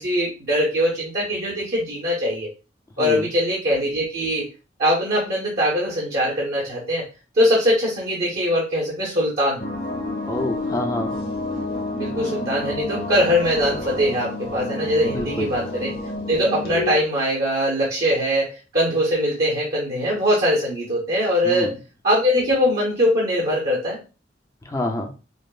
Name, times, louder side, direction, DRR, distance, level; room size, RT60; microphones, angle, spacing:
voice 1, 0.0-2.5 3.0-4.5 4.8-7.1 7.3-9.6 12.0-16.0 16.3-21.7 22.0-24.0, equal, 55° right, -4 dB, 1.0 m, -22 dB
sound 1, 9.6-16.9, left 2 dB, 55° left, 1.0 m, -29 dB
voice 2, 10.3-11.1 15.0-15.5 21.4-21.7 24.6-25.1, left 1 dB, 20° left, 4 dB, 0.5 m, -27 dB
5.0 x 2.0 x 2.3 m, 0.32 s
head